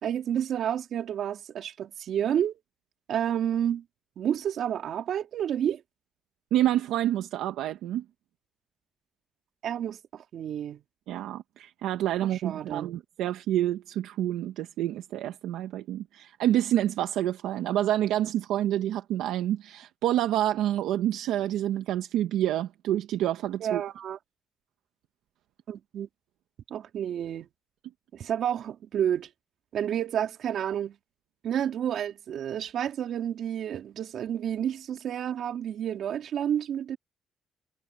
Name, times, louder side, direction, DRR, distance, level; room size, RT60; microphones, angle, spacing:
voice 1, 0.0-2.6 3.1-3.8 4.2-5.8 9.6-10.8 12.2-12.9 23.6-24.2 25.7-26.1 26.7-27.5 28.1-29.3 29.7-31.0 31.4-37.0, right 9 dB, 70° right, 4.0 m, -30 dB
voice 2, 6.5-8.0 11.1-23.8, right 12 dB, 90° right, 1.3 m, -28 dB
cardioid pair, 90°, 0 cm